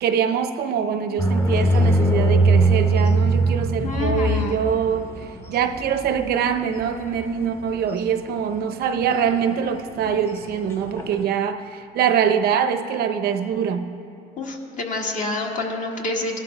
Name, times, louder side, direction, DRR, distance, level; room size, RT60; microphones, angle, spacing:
voice 1, 0.0-5.1 5.5-13.9, right 7 dB, 70° right, 8 dB, 0.6 m, -23 dB
sound 1, 1.2-8.0 8.6-9.1 9.4-9.5 9.9-11.2, right 2 dB, 15° left, 0.8 m, -21 dB
voice 2, 3.8-4.6 14.4-16.4, left 2 dB, 50° left, 0 dB, 1.5 m, -27 dB
17.5 x 11.5 x 2.2 m, 2.5 s
cardioid pair, 110°, 17 cm